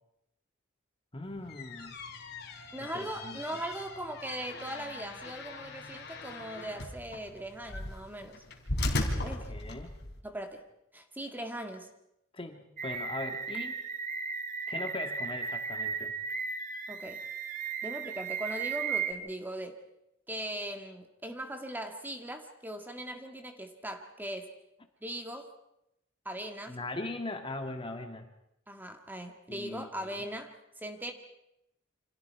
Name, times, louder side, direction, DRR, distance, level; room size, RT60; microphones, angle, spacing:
voice 1, 1.1-2.0 2.9-3.6 9.2-9.9 12.3-13.8 14.7-16.1 26.7-28.3 29.5-30.2, left 2 dB, 25° left, 5 dB, 1.8 m, -40 dB
sound 1, 1.3-10.2, left 2 dB, 55° left, 3.3 m, -38 dB
voice 2, 2.7-8.4 9.2-9.5 10.2-10.6 10.9-11.9 16.9-17.3 17.8-19.8 20.3-24.5 25.0-25.5 26.3-26.8 28.7-31.1, right 1 dB, 10° right, 5 dB, 1.9 m, -39 dB
sound 2, 12.8-19.1, right 6 dB, 40° right, 1.5 m, -35 dB
28.5 x 26.0 x 4.7 m, 0.82 s
head